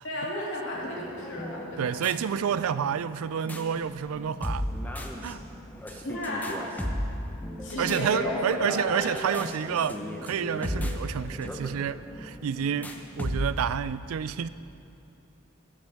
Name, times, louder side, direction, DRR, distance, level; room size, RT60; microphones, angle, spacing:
voice 1, 0.0-2.0 6.0-6.8 7.6-9.3, left 1 dB, 60° left, -4 dB, 2.5 m, -33 dB
sound 1, 0.7-13.8, equal, 10° left, 0.8 m, -36 dB
voice 2, 1.8-4.7 5.2-5.4 5.9-6.0 7.8-14.5, right 8 dB, 85° right, 15 dB, 0.4 m, -29 dB
15.0 x 12.0 x 3.5 m, 2.7 s
head